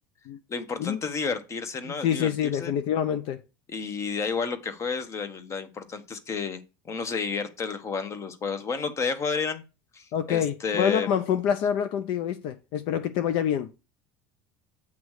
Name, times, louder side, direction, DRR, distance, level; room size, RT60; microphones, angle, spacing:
voice 1, 0.5-2.7 3.7-6.6 6.8-9.6 9.9-11.1, left 5 dB, 30° left, 1.1 m, -31 dB
voice 2, 1.9-3.4 10.1-13.7, left 9 dB, 65° left, 0.6 m, -26 dB
8.5 x 3.1 x 6.4 m
supercardioid pair, 115°, 9 cm